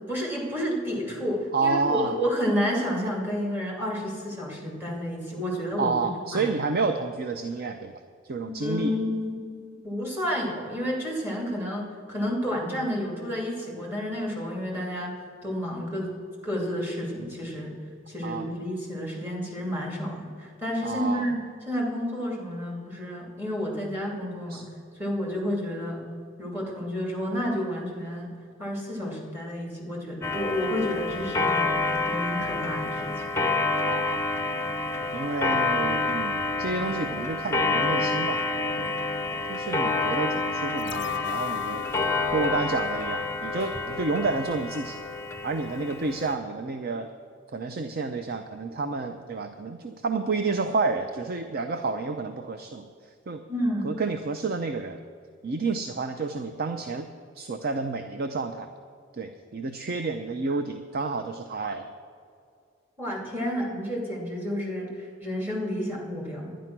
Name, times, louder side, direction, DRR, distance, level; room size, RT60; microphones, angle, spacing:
voice 1, 0.1-6.5 8.4-16.1 16.4-17.8 18.1-24.6 24.9-26.0 26.4-28.3 28.6-33.2 53.5-54.0 63.0-66.6, equal, 10° right, -2 dB, 2.6 m, -30 dB
voice 2, 1.5-2.2 5.8-8.9 18.2-18.5 20.8-21.3 24.5-24.6 33.9-34.2 35.1-38.9 39.5-41.9 42.3-45.0 45.4-47.1 47.5-52.9 53.3-53.4 53.8-55.0 55.4-57.1 57.4-58.7 59.1-61.9, right 3 dB, 50° right, 7 dB, 0.6 m, -30 dB
Clock, 30.2-46.3, left 3 dB, 15° left, 0.7 m, -28 dB
sound 1, 40.8-43.9 44.3-44.4, left 9 dB, 60° left, 0.5 m, -36 dB
11.0 x 10.5 x 6.0 m, 2.3 s
head